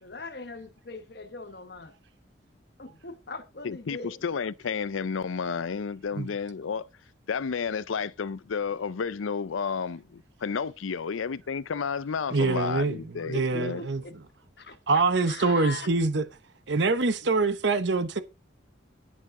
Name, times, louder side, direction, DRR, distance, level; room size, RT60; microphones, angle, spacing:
voice 1, 0.0-1.9 2.8-4.2 13.5-14.1 14.6-15.9, left 4 dB, 55° left, 1.1 m, -41 dB
voice 2, 3.6-6.9 7.3-13.8, left 6 dB, 90° left, 0.5 m, -31 dB
voice 3, 12.3-13.0 13.3-14.0 14.9-16.2 16.7-18.2, right 3 dB, 65° right, 0.8 m, -24 dB
11.0 x 7.6 x 3.7 m
head